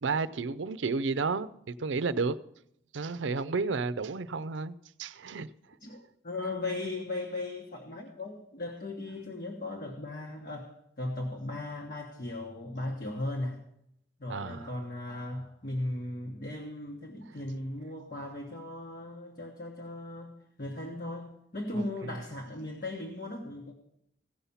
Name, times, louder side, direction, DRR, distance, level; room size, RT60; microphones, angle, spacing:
voice 1, 0.0-2.4 2.9-5.5 14.3-14.7 21.8-21.9, right 4 dB, 90° right, 0.5 m, -32 dB
voice 2, 5.8-10.7 11.0-13.6 14.2-23.7, left 2 dB, 50° left, 1.2 m, -37 dB
16.5 x 5.7 x 7.1 m
head